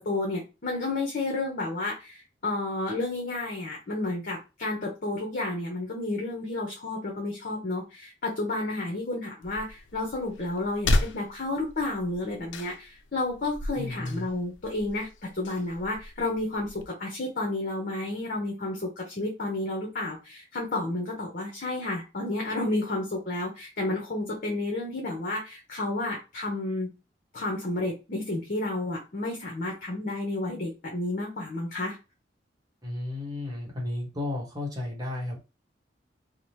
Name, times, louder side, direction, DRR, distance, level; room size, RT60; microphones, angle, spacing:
voice 1, 0.0-26.9 27.3-32.0, left 2 dB, 50° left, -1 dB, 0.7 m, -31 dB
sound 1, 9.4-16.9, left 2 dB, 85° left, 0.4 m, -34 dB
voice 2, 13.7-14.3 32.8-35.4, left 2 dB, 20° right, -3 dB, 1.1 m, -33 dB
2.8 x 2.1 x 3.1 m, 0.28 s
head